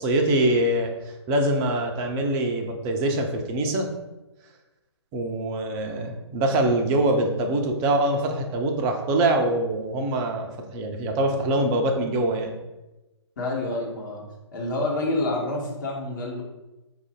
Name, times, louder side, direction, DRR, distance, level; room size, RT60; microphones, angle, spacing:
voice 1, 0.0-3.9 5.1-12.5, right 1 dB, 15° right, 3 dB, 0.4 m, -24 dB
voice 2, 13.4-14.2 14.5-16.4, left 2 dB, 45° left, -2 dB, 1.2 m, -28 dB
4.7 x 2.5 x 3.5 m, 1.0 s
figure-of-eight pair, 130°, 15 cm